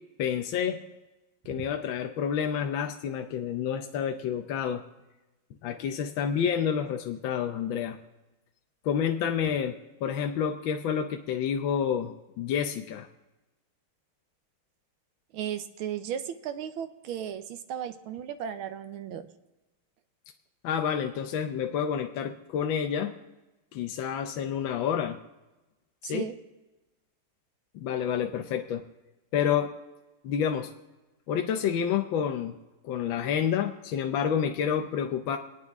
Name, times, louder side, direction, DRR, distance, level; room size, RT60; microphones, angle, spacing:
voice 1, 0.2-0.8 1.5-4.8 5.6-8.0 8.8-13.1 20.6-23.1 23.7-25.2 26.0-26.3 27.7-28.8 29.3-29.7 30.2-30.7 31.3-32.6 32.8-35.4, left 8 dB, 75° left, 5 dB, 1.5 m, -29 dB
voice 2, 15.3-19.3 26.0-26.4, right 9 dB, 85° right, 10 dB, 1.7 m, -35 dB
26.0 x 9.4 x 3.6 m, 1.1 s
omnidirectional pair, 2.3 m